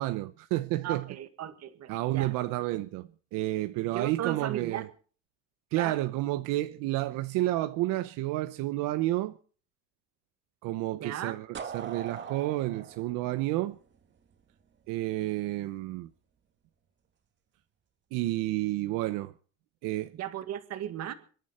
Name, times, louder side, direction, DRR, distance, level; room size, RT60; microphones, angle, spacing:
voice 1, 0.0-1.1 1.9-4.9 5.7-9.4 10.6-13.8 14.9-16.1 18.1-19.3 19.8-20.1, right 17 dB, 85° right, 0.9 m, -30 dB
voice 2, 0.8-2.3 3.9-4.9 5.7-6.0 10.9-11.4 20.1-21.1, right 10 dB, 55° right, 1.9 m, -36 dB
sound 1, 11.5-14.4, right 7 dB, 35° right, 2.1 m, -41 dB
26.0 x 11.0 x 4.3 m
cardioid pair, 135°, 31 cm